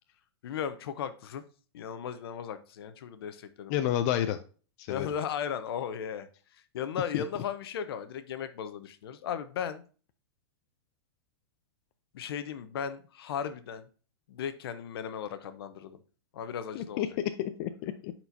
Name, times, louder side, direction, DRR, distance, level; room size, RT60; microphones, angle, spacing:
voice 1, 0.4-1.4 1.7-3.8 4.9-6.3 6.7-9.8 12.1-13.9 14.3-16.0 16.3-17.0, left 8 dB, 65° left, 11 dB, 0.8 m, -36 dB
voice 2, 3.7-4.4 4.8-5.1 7.1-7.2 16.7-17.1 17.4-18.1, left 11 dB, 40° left, 9 dB, 0.5 m, -30 dB
9.8 x 4.4 x 2.7 m, 0.38 s
hypercardioid pair, 130°, 14 cm